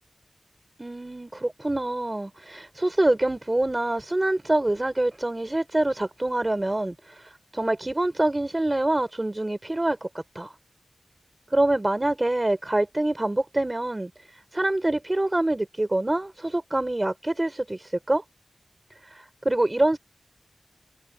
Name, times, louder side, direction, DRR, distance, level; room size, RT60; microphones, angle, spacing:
voice 1, 0.8-10.6 11.5-14.1 14.5-18.2 19.0-20.0, right 1 dB, 25° right, 4.5 m, -25 dB
wide cardioid pair, 90°, 0 cm